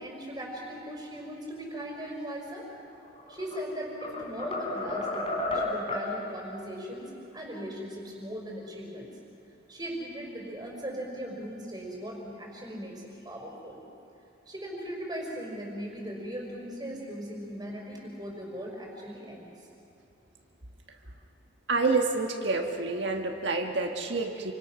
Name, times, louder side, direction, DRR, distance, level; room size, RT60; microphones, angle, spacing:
voice 1, 0.0-2.7 3.3-9.1 9.7-13.8 14.5-19.5, equal, 20° right, -1 dB, 5.0 m, -39 dB
sound 1, 3.1-3.6 4.0-6.1, left 2 dB, 30° left, 3.5 m, -32 dB
voice 2, 21.7-24.5, right 3 dB, 65° right, 3 dB, 1.6 m, -28 dB
29.5 x 25.0 x 6.2 m, 2.7 s
head